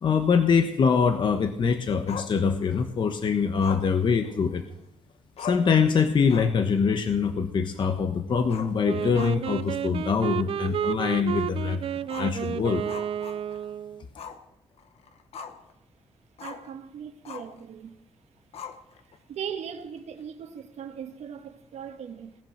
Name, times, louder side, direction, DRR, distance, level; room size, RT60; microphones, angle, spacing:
voice 1, 0.0-4.6 5.4-12.8, left 5 dB, 45° left, 1.1 m, -24 dB
Growling, 2.1-2.9 3.6-4.8 5.1-5.2 5.4-5.8 6.2-6.7 7.0-7.1 8.4-9.7 10.0-10.1 10.6-10.7 12.0-13.7 14.2-14.4 14.8-15.7 16.4-16.7 17.2-17.6 18.5-19.2, left 6 dB, 65° left, 1.3 m, -40 dB
Wind instrument woodwind instrument, 8.8-14.0, right 9 dB, 55° right, 0.5 m, -31 dB
voice 2, 16.4-18.0 19.3-22.4, right 8 dB, 80° right, 1.6 m, -39 dB
18.5 x 10.5 x 6.6 m
wide cardioid pair, 160°, 11 cm